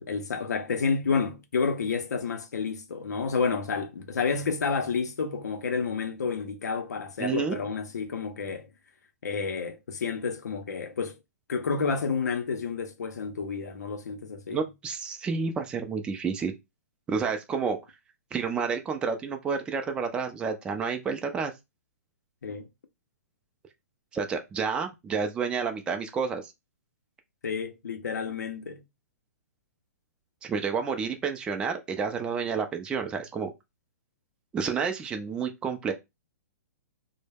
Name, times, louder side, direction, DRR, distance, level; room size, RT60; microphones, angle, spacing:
voice 1, 0.0-8.7 9.2-11.2 11.5-14.7 22.4-22.7 27.4-28.8, left 5 dB, 90° left, 0.5 m, -30 dB
voice 2, 7.2-7.6 14.5-16.6 17.1-17.8 18.3-21.5 24.1-26.5 30.4-33.5 34.5-35.9, right 5 dB, 10° right, 0.3 m, -30 dB
2.1 x 2.0 x 3.3 m
hypercardioid pair, 145°, 9 cm